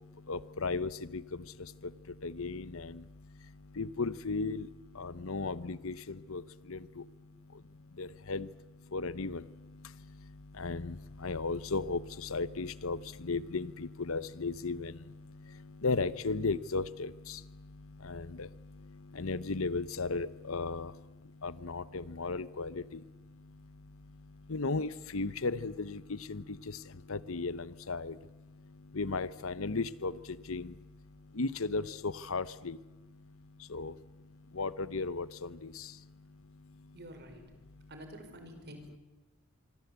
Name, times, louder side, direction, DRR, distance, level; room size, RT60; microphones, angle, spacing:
voice 1, 0.3-1.2 2.2-3.0 3.8-4.7 5.0-6.4 6.7-6.8 8.0-8.5 8.9-9.4 10.6-10.9 11.2-14.9 15.8-17.4 18.0-18.5 19.2-20.9 21.4-22.8 24.5-26.4 27.1-28.1 28.9-30.1 30.5-30.7 31.4-32.8 33.7-33.9 34.6-35.7, left 3 dB, 65° left, 17 dB, 0.9 m, -35 dB
voice 2, 36.9-37.4 37.9-39.0, right 1 dB, 50° right, 7 dB, 4.9 m, -48 dB
25.5 x 24.5 x 8.2 m, 1.1 s
head